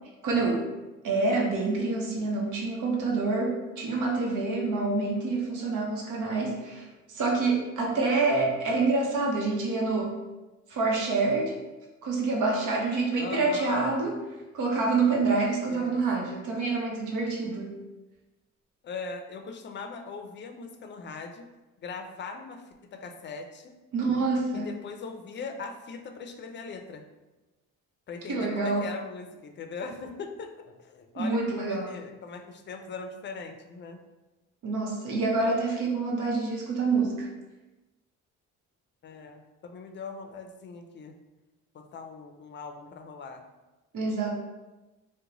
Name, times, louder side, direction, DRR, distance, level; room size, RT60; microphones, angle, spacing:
voice 1, 0.2-0.7 1.0-10.2 10.7-11.6 12.0-14.2 14.5-17.7 23.9-24.7 28.3-28.9 31.2-31.9 34.6-37.3 43.9-44.3, right 3 dB, 80° right, -1 dB, 0.9 m, -27 dB
voice 2, 13.2-13.9 15.7-16.0 18.8-21.5 21.8-22.6 22.9-23.7 24.5-27.0 28.1-34.0 39.0-41.1 41.7-43.4, left 4 dB, 40° left, 5 dB, 0.4 m, -40 dB
2.9 x 2.2 x 3.8 m, 1.1 s
cardioid pair, 90°, 30 cm